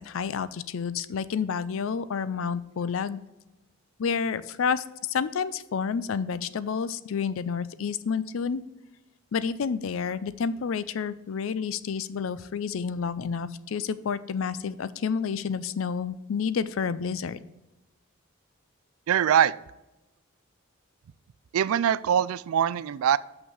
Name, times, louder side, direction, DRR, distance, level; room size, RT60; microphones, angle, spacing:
voice 1, 0.0-3.2 4.0-8.6 9.3-17.4, left 6 dB, 70° left, 16 dB, 0.4 m, -29 dB
voice 2, 19.1-19.5 21.5-23.2, right 9 dB, 80° right, 19 dB, 0.3 m, -23 dB
6.4 x 5.8 x 5.4 m, 1.0 s
head